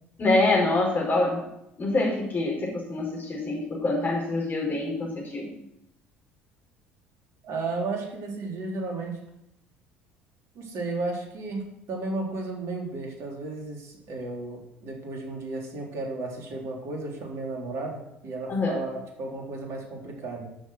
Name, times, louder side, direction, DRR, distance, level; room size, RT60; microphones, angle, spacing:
voice 1, 0.2-1.4 1.8-5.5 18.5-18.8, left 2 dB, 30° left, 0 dB, 4.9 m, -25 dB
voice 2, 7.4-9.2 10.6-20.5, right 3 dB, 50° right, 0 dB, 3.5 m, -34 dB
12.5 x 7.2 x 6.3 m, 0.81 s
figure-of-eight pair, 60°, 6 cm